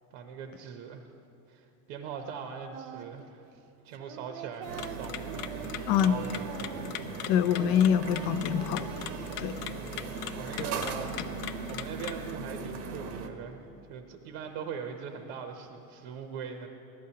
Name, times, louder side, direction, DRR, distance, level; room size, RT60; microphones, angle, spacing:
voice 1, 0.1-1.1 1.5-3.5 3.8-6.9 9.8-16.7, right 6 dB, 60° right, 5 dB, 0.8 m, -41 dB
Singing, 2.7-3.3 3.5-7.2 7.5-9.5, right 8 dB, 40° right, 0.4 m, -44 dB
sound 1, 4.6-12.3, left 11 dB, 85° left, 0.7 m, -42 dB
sound 2, 4.7-13.3, right 4 dB, 90° right, 1.1 m, -38 dB
voice 2, 7.3-8.8 9.4-9.5, left 9 dB, 40° left, 11 dB, 0.4 m, -25 dB
15.5 x 12.0 x 2.8 m, 2.8 s
supercardioid pair, 140°, 45 cm